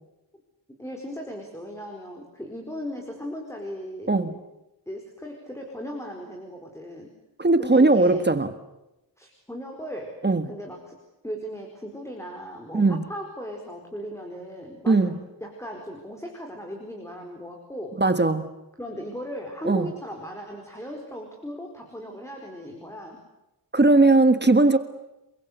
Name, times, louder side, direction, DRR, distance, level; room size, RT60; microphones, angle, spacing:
voice 1, 0.8-4.4 4.9-7.1 7.6-8.2 9.2-10.2 10.5-11.0 11.2-15.1 15.4-18.0 18.8-23.2, equal, 5° left, 2 dB, 4.7 m, -37 dB
voice 2, 7.4-8.5 10.2-10.5 12.7-13.0 14.9-15.2 18.0-18.5 19.6-19.9 23.7-24.8, right 2 dB, 25° right, 10 dB, 1.6 m, -19 dB
29.0 x 22.5 x 8.2 m, 0.94 s
wide cardioid pair, 125°, 43 cm